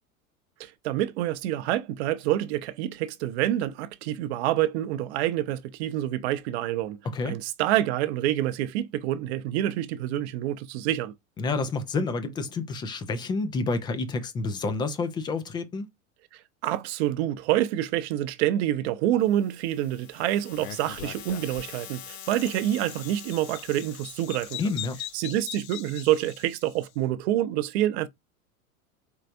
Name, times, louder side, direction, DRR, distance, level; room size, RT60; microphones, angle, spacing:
voice 1, 0.6-7.0 7.2-11.1 16.3-24.7 25.1-28.1, right 13 dB, 50° right, 0.7 m, -27 dB
voice 2, 11.4-15.9 24.6-25.0, left 3 dB, 10° left, 0.3 m, -29 dB
sound 1, 19.2-25.4, left 8 dB, 30° left, 0.9 m, -46 dB
Bird vocalization bird call bird song, 20.5-26.8, left 11 dB, 70° left, 0.6 m, -41 dB
4.6 x 3.2 x 2.6 m
figure-of-eight pair, 90°, 43 cm